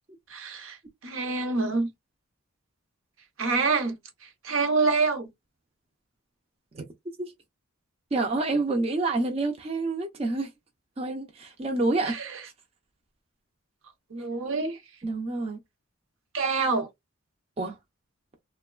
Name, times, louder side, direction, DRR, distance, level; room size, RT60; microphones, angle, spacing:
voice 1, 0.3-0.8 1.0-1.9 3.4-4.0 4.4-5.3 12.0-12.3 14.1-14.8 16.3-16.9, right 4 dB, 70° right, 0.7 m, -26 dB
voice 2, 8.1-10.5 11.0-12.2 15.0-15.6 17.6-17.8, right 2 dB, 25° right, 0.4 m, -28 dB
3.0 x 2.1 x 2.3 m
head